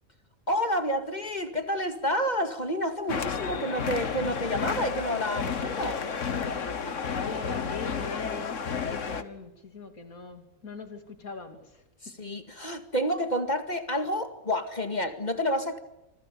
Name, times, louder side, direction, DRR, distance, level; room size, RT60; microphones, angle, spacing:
voice 1, 0.5-6.0 12.0-15.8, equal, 30° left, 7 dB, 2.3 m, -29 dB
sound 1, 3.1-9.2, left 6 dB, 60° left, 1.8 m, -31 dB
voice 2, 7.1-11.8, left 4 dB, 80° left, 7 dB, 3.4 m, -42 dB
28.0 x 25.5 x 6.9 m, 0.87 s
omnidirectional pair, 1.5 m